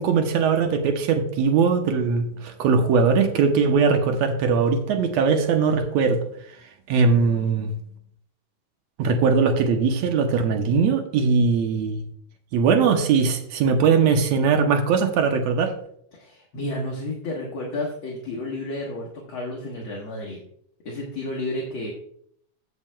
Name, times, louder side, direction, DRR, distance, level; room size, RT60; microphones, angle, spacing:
voice 1, 0.0-6.2 6.9-7.7 9.0-12.0 12.5-15.8, right 5 dB, 70° right, 5 dB, 1.9 m, -20 dB
voice 2, 16.1-20.4 20.8-21.9, left 1 dB, 55° left, -2 dB, 1.6 m, -31 dB
15.0 x 7.1 x 2.2 m, 0.68 s
omnidirectional pair, 3.6 m